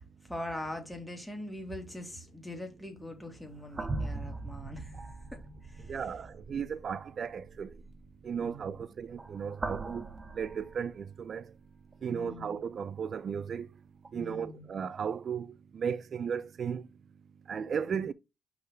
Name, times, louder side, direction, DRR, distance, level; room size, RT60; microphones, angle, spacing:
voice 1, 0.0-6.0 8.4-8.9 12.1-12.6 14.1-14.6, left 1 dB, 5° left, 2.5 m, -42 dB
sound 1, 3.0-11.4 11.9-12.1 14.0-14.1, right 3 dB, 30° right, 1.0 m, -41 dB
voice 2, 5.9-7.7 8.2-10.0 10.3-11.5 12.0-13.7 14.1-16.9 17.5-18.1, right 7 dB, 50° right, 0.5 m, -35 dB
5.5 x 4.1 x 4.5 m
cardioid pair, 90°, 0 cm